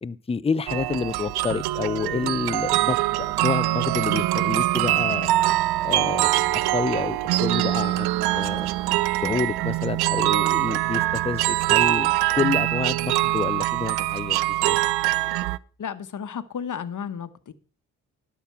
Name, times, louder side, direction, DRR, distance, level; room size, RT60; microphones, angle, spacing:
voice 1, 0.0-5.3 5.8-8.7 9.2-14.8, left 5 dB, 15° left, 0.5 m, -29 dB
sound 1, 0.7-15.6, right 16 dB, 85° right, 0.5 m, -23 dB
voice 2, 15.8-17.5, left 7 dB, 55° left, 1.2 m, -33 dB
12.0 x 6.0 x 5.7 m
supercardioid pair, 55°, 37 cm